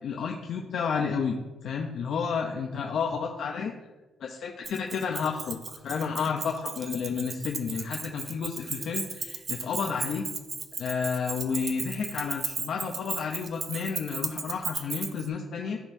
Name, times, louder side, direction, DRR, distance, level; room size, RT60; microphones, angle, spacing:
voice 1, 0.0-3.7 4.2-10.2 10.8-15.8, left 5 dB, 65° left, 1 dB, 0.6 m, -31 dB
Keys jangling, 4.6-15.3, right 4 dB, 45° right, 0.7 m, -35 dB
13.0 x 4.3 x 2.7 m, 1.1 s
cardioid pair, 90°, 0 cm